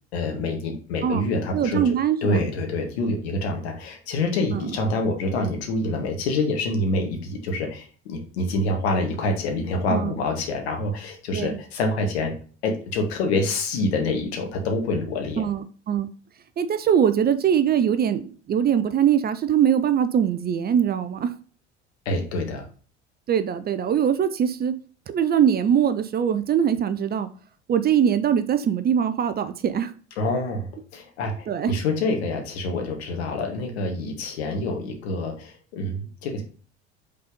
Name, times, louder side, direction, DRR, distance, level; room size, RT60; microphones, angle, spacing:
voice 1, 0.1-1.8 2.2-12.3 12.6-15.4 22.1-22.7 30.2-36.4, left 2 dB, 65° left, 3 dB, 1.8 m, -26 dB
voice 2, 1.5-2.4 4.5-4.7 9.9-10.1 11.3-11.6 15.4-16.1 16.6-21.3 23.3-24.7 25.1-27.3 27.7-29.9 31.5-31.8, right 8 dB, 30° right, 12 dB, 0.6 m, -22 dB
5.3 x 4.1 x 5.2 m, 0.40 s
figure-of-eight pair, 65°, 33 cm